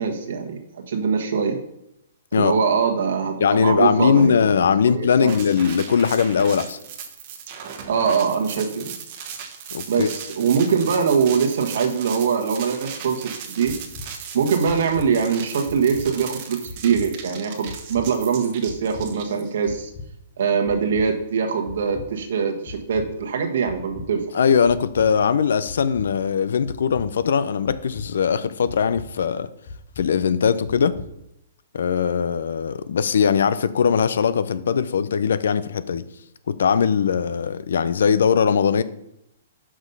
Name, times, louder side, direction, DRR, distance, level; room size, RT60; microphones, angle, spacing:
voice 1, 0.0-1.6 2.3-4.3 4.9-5.3 7.9-8.9 9.9-13.8 14.3-19.9 20.4-24.2, right 6 dB, 65° right, 4 dB, 1.4 m, -23 dB
voice 2, 3.4-6.8 9.7-10.1 24.3-29.5 30.0-31.0 31.7-36.1 36.5-38.8, left 6 dB, 75° left, 15 dB, 0.5 m, -20 dB
sound 1, 5.3-19.7, right 7 dB, 40° right, 1.1 m, -37 dB
sound 2, 13.7-14.1 14.7-15.1 15.7-16.1 16.7-17.1 17.7-18.1 18.7-19.1 19.7-20.1 20.7-21.1 21.7-22.1 22.7-23.1 23.7-24.1 24.7-25.1 25.7-26.1 26.7-27.1 27.7-28.1 28.7-29.1 29.7-30.1 30.7-31.1, left 4 dB, 40° left, 1.0 m, -37 dB
6.2 x 5.1 x 5.4 m, 0.81 s
hypercardioid pair, 155°, 0 cm